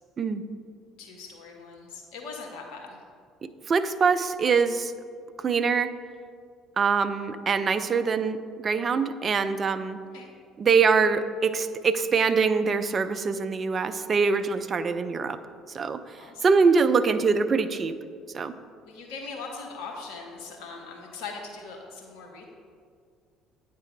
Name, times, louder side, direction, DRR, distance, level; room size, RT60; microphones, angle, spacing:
voice 1, 1.0-3.0 10.1-10.3 16.2-16.4 18.8-22.4, left 4 dB, 65° left, 0 dB, 1.0 m, -40 dB
voice 2, 3.4-4.9 5.4-5.9 6.8-8.4 8.6-10.0 10.6-15.4 15.7-16.0 16.4-17.9 18.3-18.5, right 5 dB, 35° right, 11 dB, 0.3 m, -24 dB
8.7 x 3.4 x 4.5 m, 2.1 s
figure-of-eight pair, 55°, 0 cm